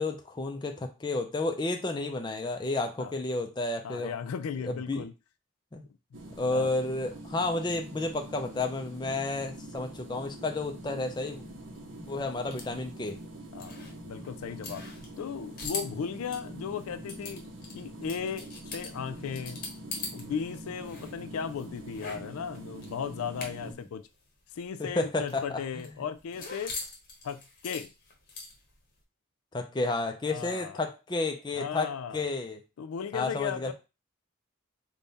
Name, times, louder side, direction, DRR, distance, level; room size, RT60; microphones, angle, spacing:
voice 1, 0.0-4.1 4.6-5.1 5.7-5.8 6.4-11.4 12.1-13.2 24.8-25.8 29.5-32.6 33.1-33.7, left 2 dB, 20° left, 0.4 m, -31 dB
voice 2, 3.8-5.1 6.5-6.7 13.5-14.8 15.2-17.5 17.7-19.6 20.1-24.0 24.6-26.7 27.2-27.9 30.2-30.8 31.5-32.2 32.8-33.7, left 7 dB, 90° left, 0.4 m, -36 dB
sound 1, 6.1-23.7, right 1 dB, 65° right, 0.7 m, -45 dB
sound 2, 10.8-20.2 20.5-23.8 24.1-24.2 24.5-28.8, left 4 dB, 45° left, 0.9 m, -42 dB
3.5 x 2.2 x 3.9 m
head